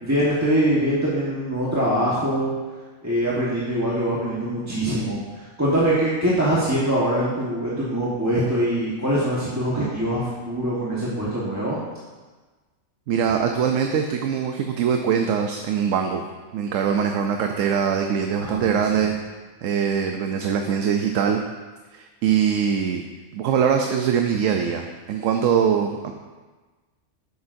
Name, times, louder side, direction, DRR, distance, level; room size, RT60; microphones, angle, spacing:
voice 1, 0.0-2.5 3.0-11.8 18.4-19.1, right 1 dB, 15° right, -8 dB, 1.2 m, -23 dB
voice 2, 13.1-16.2 16.5-19.2 19.6-21.4 21.9-23.0 23.3-26.1, right 7 dB, 80° right, 4 dB, 1.0 m, -22 dB
11.0 x 8.2 x 2.6 m, 1.3 s
omnidirectional pair, 1.3 m